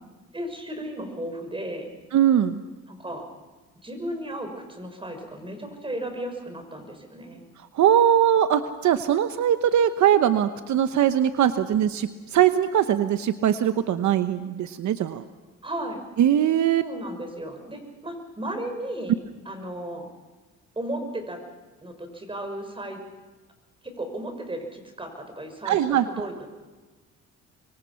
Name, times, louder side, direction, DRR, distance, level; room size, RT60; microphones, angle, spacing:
voice 1, 0.3-1.9 2.9-3.3 3.8-7.4 15.6-16.0 16.8-19.2 19.5-20.1 20.8-21.4 21.8-23.0 24.0-26.5, right 1 dB, 15° right, 5 dB, 5.9 m, -34 dB
voice 2, 2.1-2.6 7.7-15.2 16.2-16.8 25.6-26.3, right 10 dB, 70° right, 10 dB, 1.0 m, -21 dB
25.5 x 23.0 x 5.8 m, 1.3 s
cardioid pair, 90°, 30 cm